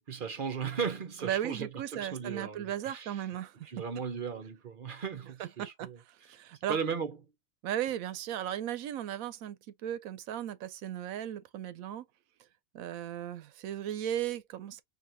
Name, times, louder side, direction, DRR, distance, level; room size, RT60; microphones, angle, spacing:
voice 1, 0.0-3.2 3.6-6.0 6.7-7.2, right 6 dB, 50° right, 0.7 m, -36 dB
voice 2, 1.2-3.6 5.4-6.8 7.6-9.6 9.8-12.1 12.7-14.8, right 11 dB, 75° right, 1.0 m, -36 dB
4.6 x 2.7 x 2.6 m
omnidirectional pair, 1.5 m